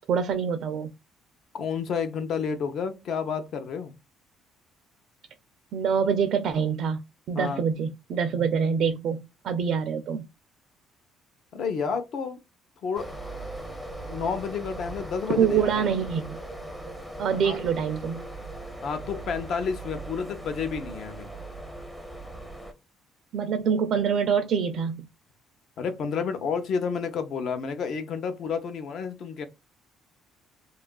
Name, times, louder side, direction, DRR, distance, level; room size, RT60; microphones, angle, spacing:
voice 1, 0.1-0.9 5.7-7.0 7.3-10.3 15.3-16.4 17.2-18.3 23.3-25.1, right 6 dB, 55° right, 0.4 m, -25 dB
voice 2, 1.5-3.9 7.3-7.7 11.5-12.4 12.8-13.1 14.1-15.9 17.4-17.6 18.8-21.3 25.8-29.5, left 6 dB, 55° left, 0.6 m, -30 dB
sound 1, 12.9-22.7, right 2 dB, 5° left, 0.6 m, -39 dB
2.8 x 2.3 x 2.2 m
cardioid pair, 140°, 0 cm